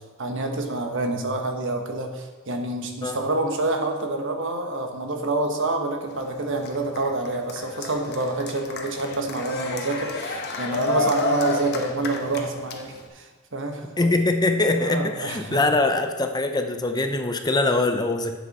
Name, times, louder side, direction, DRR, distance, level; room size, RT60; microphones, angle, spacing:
voice 1, 0.2-13.9 14.8-15.6, right 2 dB, 60° right, 4 dB, 1.3 m, -27 dB
Cheering, 6.1-13.1, left 3 dB, 50° left, 1.2 m, -31 dB
voice 2, 14.0-18.4, left 2 dB, 20° left, 6 dB, 0.6 m, -23 dB
11.0 x 7.6 x 4.2 m, 1.4 s
head